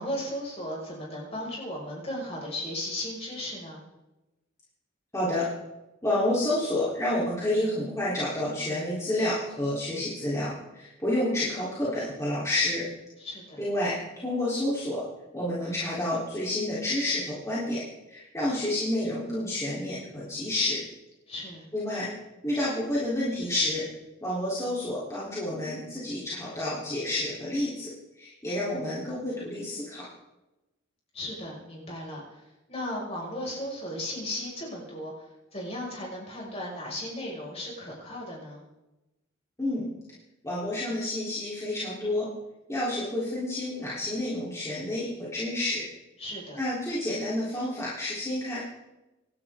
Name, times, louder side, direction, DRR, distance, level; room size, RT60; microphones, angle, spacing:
voice 1, 0.0-3.8 13.2-13.6 21.3-21.6 31.1-32.4 32.7-35.1 35.5-38.6 46.2-46.6, left 1 dB, 30° left, -3 dB, 6.1 m, -36 dB
voice 2, 5.1-5.5 6.0-12.8 13.6-14.0 14.2-15.0 15.3-17.8 18.1-20.8 21.7-22.1 22.4-23.9 24.2-27.9 28.2-30.1 39.6-39.9 40.4-42.3 42.7-45.8 46.6-48.7, left 1 dB, 15° left, -9 dB, 3.8 m, -29 dB
26.5 x 12.5 x 3.8 m, 1.0 s
head